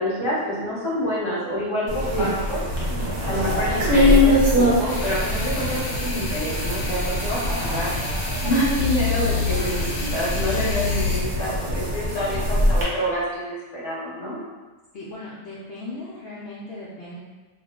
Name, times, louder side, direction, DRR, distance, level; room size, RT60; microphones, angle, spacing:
voice 1, 0.0-2.6 3.2-7.9 8.4-14.4, equal, 25° left, -9 dB, 1.1 m, -27 dB
sound 1, 1.9-12.8, left 1 dB, 80° right, 1.1 m, -23 dB
voice 2, 3.2-3.8 7.6-7.9 14.9-17.2, left 2 dB, 65° left, -7 dB, 0.7 m, -37 dB
sound 2, 4.9-11.2, left 7 dB, 90° left, 1.1 m, -30 dB
2.8 x 2.0 x 3.5 m, 1.3 s
omnidirectional pair, 1.2 m